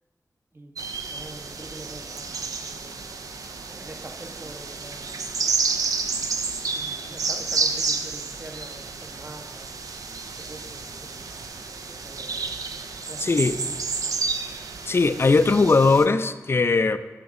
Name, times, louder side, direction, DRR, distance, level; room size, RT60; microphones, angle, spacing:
sound 1, 0.8-16.0, right 4 dB, 80° right, 0.4 m, -30 dB
voice 1, 1.1-2.3 2.6-3.1 3.7-5.2 6.7-9.8 10.4-11.4 11.7-12.6 13.1-14.2, right 2 dB, 40° right, 3 dB, 0.8 m, -44 dB
voice 2, 13.2-13.6 14.9-17.0, left 3 dB, 45° left, 12 dB, 0.3 m, -19 dB
8.0 x 5.9 x 3.6 m, 1.3 s
cardioid pair, 55°, 6 cm